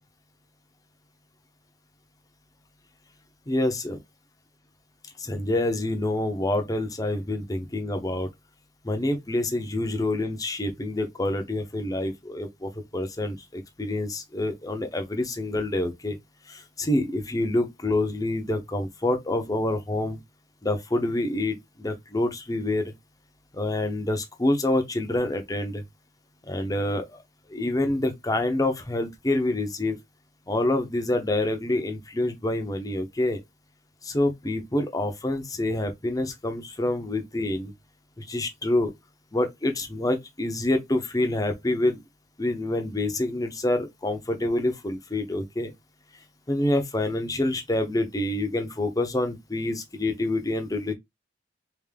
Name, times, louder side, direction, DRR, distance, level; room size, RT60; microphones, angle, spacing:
voice 1, 3.5-4.0 5.2-8.3 8.8-16.2 16.5-20.2 20.6-22.9 23.5-25.8 26.4-27.2 27.5-30.0 30.5-33.4 34.0-37.7 38.2-38.9 39.3-42.0 42.4-45.7 46.5-50.9, left 1 dB, 20° left, 0.7 m, -27 dB
3.6 x 2.4 x 3.4 m
head